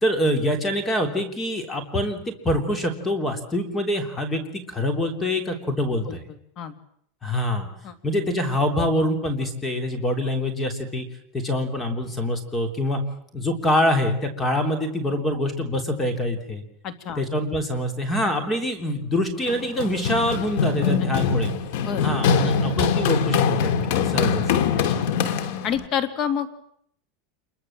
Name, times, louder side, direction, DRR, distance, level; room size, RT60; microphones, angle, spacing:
voice 1, 0.0-2.2 2.4-6.2 7.2-7.7 8.0-11.1 11.3-13.0 13.3-16.6 17.2-21.5 22.0-24.4, left 1 dB, 15° left, 7 dB, 3.4 m, -25 dB
voice 2, 6.1-6.8 7.8-8.0 16.8-17.2 21.8-22.0 24.9-25.1 25.6-26.5, left 8 dB, 40° left, 10 dB, 2.7 m, -28 dB
Run, 19.5-25.8, left 6 dB, 70° left, 2.4 m, -23 dB
27.5 x 22.5 x 7.5 m, 0.68 s
supercardioid pair, 150°, 0 cm